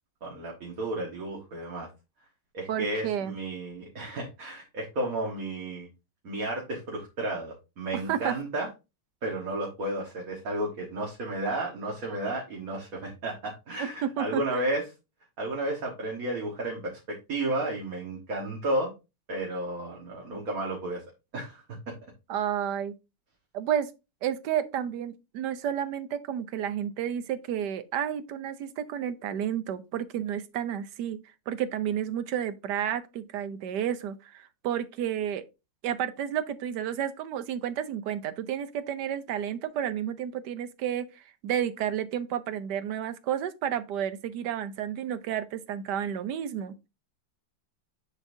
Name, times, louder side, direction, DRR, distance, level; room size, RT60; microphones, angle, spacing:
voice 1, 0.2-1.9 2.5-5.9 6.2-8.7 9.2-14.9 15.4-18.9 19.3-21.0 21.3-21.6, right 1 dB, 50° right, 1.9 m, -32 dB
voice 2, 2.7-3.3 7.9-8.4 13.8-14.6 22.3-22.9 23.5-23.9 24.2-31.2 31.5-35.4 35.8-46.9, right 9 dB, 70° right, 1.2 m, -31 dB
9.8 x 4.2 x 2.7 m
omnidirectional pair, 2.1 m